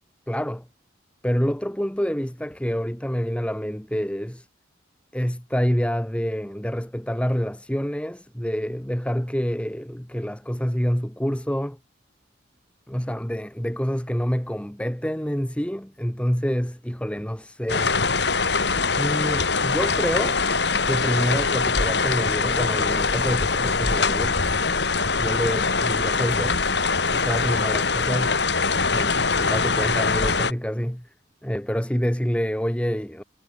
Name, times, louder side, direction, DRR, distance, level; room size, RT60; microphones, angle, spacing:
voice 1, 0.3-0.7 1.2-4.5 5.1-11.8 12.9-17.9 19.0-20.4 20.8-24.4 25.2-26.6 27.1-28.4 28.9-31.1 31.4-33.2, equal, 5° left, 1.4 m, -27 dB
sound 1, 17.7-30.5, left 4 dB, 60° left, 2.2 m, -23 dB
head